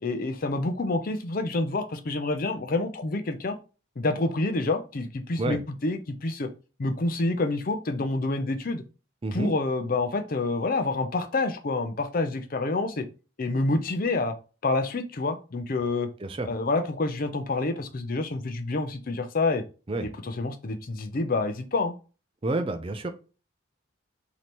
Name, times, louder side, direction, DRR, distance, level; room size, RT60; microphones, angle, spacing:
voice 1, 0.0-3.5 4.0-6.5 6.8-8.8 9.3-13.0 13.4-14.3 14.6-16.1 16.4-19.6 20.0-21.9, left 2 dB, 45° left, 7 dB, 0.5 m, -28 dB
voice 2, 22.4-23.1, right 2 dB, 25° right, 8 dB, 0.4 m, -29 dB
3.2 x 2.9 x 4.2 m, 0.34 s
head